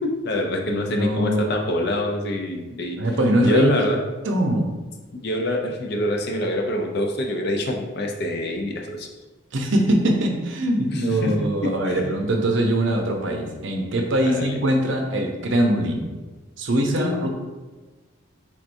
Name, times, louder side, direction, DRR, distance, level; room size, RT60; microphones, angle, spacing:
voice 1, 0.0-3.0 3.4-4.0 5.1-9.1 10.9-12.1 14.3-14.6 16.8-17.3, left 1 dB, 50° left, 2 dB, 0.5 m, -25 dB
voice 2, 0.7-1.4 2.7-3.8 4.2-4.7 9.5-16.0 16.6-17.3, right 1 dB, 65° right, 2 dB, 0.6 m, -22 dB
4.6 x 3.6 x 2.6 m, 1.2 s
head